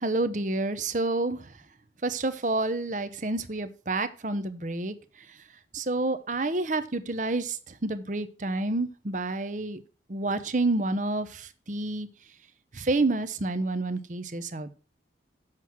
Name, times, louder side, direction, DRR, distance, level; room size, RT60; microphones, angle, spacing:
voice 1, 0.0-1.4 2.0-4.9 5.7-7.6 7.8-9.8 10.1-12.1 12.7-14.7, right 2 dB, 45° right, 12 dB, 0.8 m, -29 dB
7.6 x 6.1 x 6.0 m, 0.36 s
head